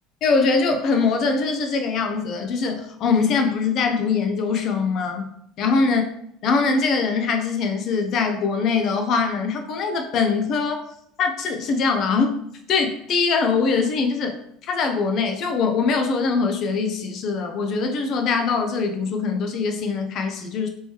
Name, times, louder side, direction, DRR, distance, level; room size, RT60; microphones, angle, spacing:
voice 1, 0.2-5.3 5.6-6.0 6.4-10.8 11.2-12.4 12.7-14.4 14.7-20.7, left 4 dB, 40° left, 5 dB, 0.5 m, -22 dB
3.6 x 3.1 x 2.8 m, 0.72 s
cardioid pair, 150°, 0 cm